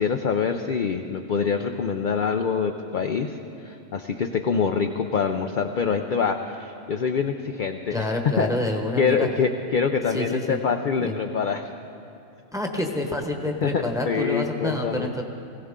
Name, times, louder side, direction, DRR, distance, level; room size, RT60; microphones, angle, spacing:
voice 1, 0.0-3.4 3.6-8.0 8.4-8.5 9.0-11.7 13.6-15.1, left 6 dB, 50° left, 4 dB, 0.6 m, -25 dB
voice 2, 7.9-9.3 10.1-10.6 11.0-11.1 12.5-15.2, left 1 dB, 5° right, 2 dB, 1.0 m, -27 dB
20.5 x 16.5 x 3.7 m, 2.7 s
omnidirectional pair, 1.3 m